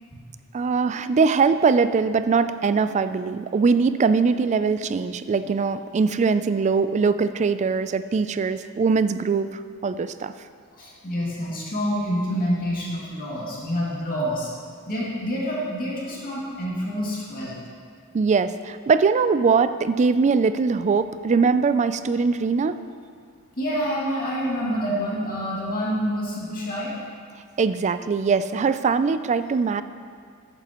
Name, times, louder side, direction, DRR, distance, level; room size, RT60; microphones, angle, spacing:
voice 1, 0.5-10.3 18.1-22.8 27.6-29.8, right 5 dB, 30° right, 12 dB, 0.3 m, -21 dB
voice 2, 10.8-14.5 14.9-17.6 23.6-27.0, equal, 40° left, -6 dB, 2.3 m, -27 dB
14.0 x 9.0 x 3.0 m, 2.1 s
head